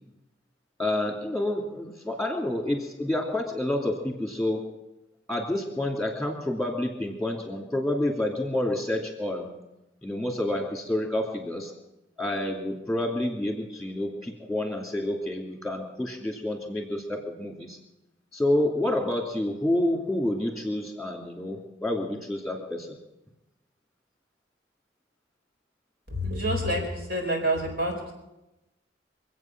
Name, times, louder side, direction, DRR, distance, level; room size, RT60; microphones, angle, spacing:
voice 1, 0.8-4.6 5.3-9.5 10.0-11.7 12.2-17.8 18.3-23.0, left 1 dB, ahead, 1 dB, 2.7 m, -29 dB
voice 2, 26.1-27.9, equal, 60° right, 1 dB, 4.3 m, -27 dB
25.0 x 8.5 x 6.0 m, 0.95 s
head